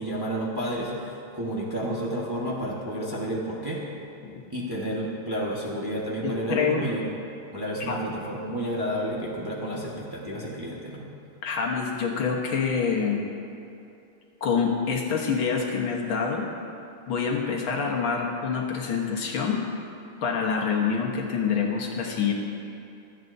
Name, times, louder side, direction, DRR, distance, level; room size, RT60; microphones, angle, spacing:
voice 1, 0.0-3.8 4.5-7.1 7.5-11.1, equal, 15° right, -5 dB, 1.2 m, -31 dB
voice 2, 6.2-6.9 7.9-8.0 11.4-13.2 14.4-16.5 17.1-19.6 20.2-22.3, left 6 dB, 70° left, -1 dB, 2.0 m, -26 dB
25.0 x 9.0 x 2.7 m, 2.7 s
omnidirectional pair, 2.3 m